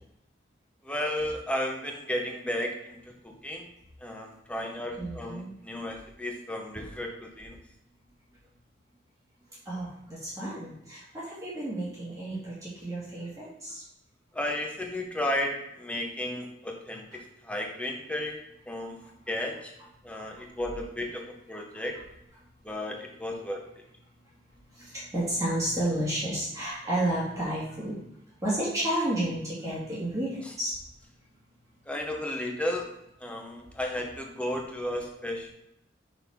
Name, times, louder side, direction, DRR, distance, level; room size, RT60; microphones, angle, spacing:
voice 1, 0.8-3.6 4.0-7.6 14.3-18.4 18.7-19.0 19.3-19.7 20.0-22.0 22.6-23.6 31.9-32.9 33.2-35.5, left 1 dB, 5° left, 2 dB, 0.8 m, -33 dB
voice 2, 5.0-5.5 9.7-13.8 20.3-20.4 22.7-22.8 24.7-28.0 28.4-30.7 33.5-33.6, right 1 dB, 20° right, -8 dB, 1.7 m, -31 dB
5.9 x 4.0 x 4.2 m, 0.82 s
head